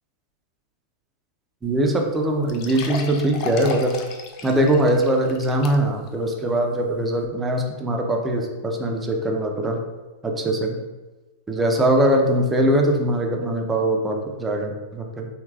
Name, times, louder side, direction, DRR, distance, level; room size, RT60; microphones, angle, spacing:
sound 1, 1.6-1.7 2.0-2.1 2.5-6.1 6.5-6.6 7.2-7.3, left 5 dB, 45° left, 0.4 m, -35 dB
voice 1, 1.6-3.9 4.4-9.8 10.2-10.8 11.5-15.3, right 1 dB, 15° right, 2 dB, 0.5 m, -21 dB
3.2 x 2.8 x 2.3 m, 1.2 s
hypercardioid pair, 110°, 0 cm